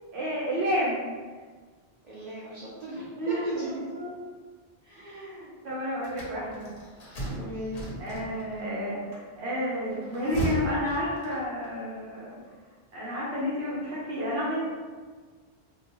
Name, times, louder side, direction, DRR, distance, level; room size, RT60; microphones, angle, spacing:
voice 1, 0.1-1.0 2.9-3.8 5.6-6.7 8.0-12.4 12.9-14.6, equal, 80° right, -7 dB, 0.9 m, -30 dB
voice 2, 2.0-4.1 4.8-5.5 7.3-7.8 8.3-8.4, equal, 55° right, -6 dB, 0.5 m, -40 dB
sound 1, 6.0-8.6 9.9-11.7, right 1 dB, 45° left, 0.6 m, -36 dB
2.7 x 2.1 x 3.0 m, 1.5 s
omnidirectional pair, 1.1 m